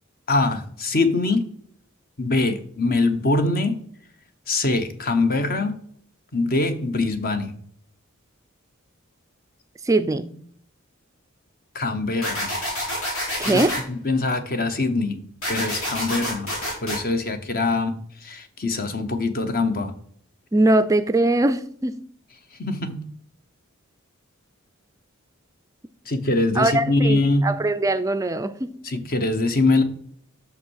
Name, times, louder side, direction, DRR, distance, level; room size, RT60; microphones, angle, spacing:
voice 1, 0.3-1.4 2.2-3.8 4.5-5.8 6.3-7.6 11.7-12.5 13.5-16.5 16.8-18.0 18.2-20.0 22.6-23.0 26.1-27.5 28.8-29.8, left 2 dB, 45° left, 8 dB, 1.0 m, -23 dB
voice 2, 9.8-10.3 13.4-13.8 20.5-22.0 26.6-28.7, right 2 dB, 15° right, 12 dB, 0.3 m, -21 dB
sound 1, 12.2-13.8 15.4-17.0, left 1 dB, 75° left, 3.5 m, -27 dB
6.2 x 5.9 x 6.3 m, 0.63 s
head